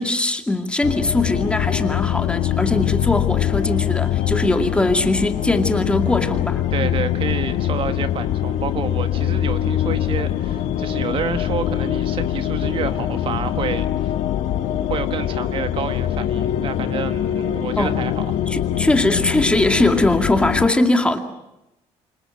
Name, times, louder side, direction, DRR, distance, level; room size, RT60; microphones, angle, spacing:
voice 1, 0.0-7.0 17.8-18.0 18.5-21.2, left 2 dB, 10° left, 2.3 m, -20 dB
sound 1, 0.8-20.7, left 11 dB, 75° left, 1.8 m, -23 dB
sound 2, 4.4-19.5, left 7 dB, 35° left, 1.8 m, -39 dB
voice 2, 6.7-14.1 14.9-18.4, right 7 dB, 50° right, 1.6 m, -29 dB
28.5 x 25.0 x 6.4 m
cardioid pair, 130°, 12 cm